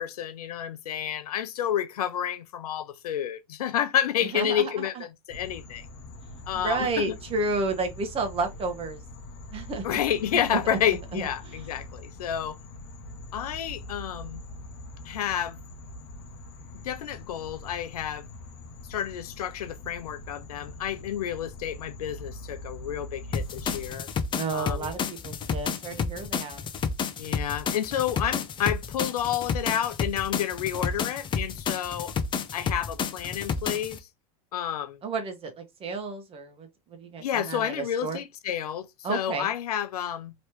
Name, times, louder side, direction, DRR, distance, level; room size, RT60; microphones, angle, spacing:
voice 1, 0.0-5.9 6.5-7.2 9.8-12.6 13.3-14.4 15.1-15.6 16.8-18.3 18.9-24.1 24.5-24.9 27.2-32.1 32.5-34.0 34.5-35.0 37.2-40.3, left 10 dB, 90° left, 0.6 m, -30 dB
voice 2, 4.2-5.0 6.5-9.0 9.5-10.0 10.5-10.6 11.1-11.7 24.3-26.6 35.0-38.2 39.0-39.5, right 3 dB, 30° right, 1.1 m, -32 dB
sound 1, 5.3-24.0, left 1 dB, 55° left, 0.9 m, -43 dB
sound 2, 23.3-34.0, left 6 dB, 25° left, 0.6 m, -31 dB
3.1 x 3.0 x 3.0 m
hypercardioid pair, 110°, 19 cm